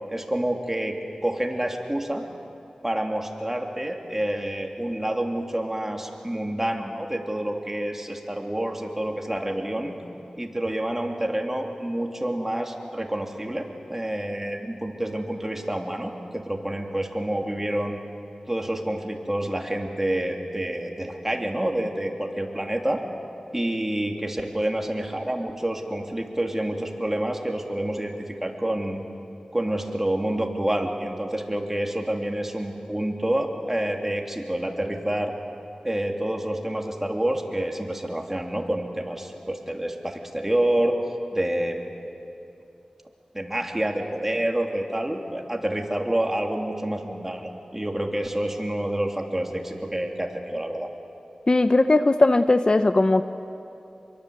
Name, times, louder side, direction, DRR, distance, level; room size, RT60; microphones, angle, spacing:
voice 1, 0.1-2.2 2.8-10.0 10.4-18.0 18.5-23.0 23.5-29.0 29.5-35.3 35.8-41.0 41.3-41.8 43.3-50.9, right 1 dB, 15° right, 2 dB, 3.1 m, -28 dB
voice 2, 51.5-53.3, left 2 dB, 45° left, 10 dB, 0.8 m, -18 dB
26.0 x 23.0 x 8.3 m, 2.6 s
wide cardioid pair, 55°, 2 cm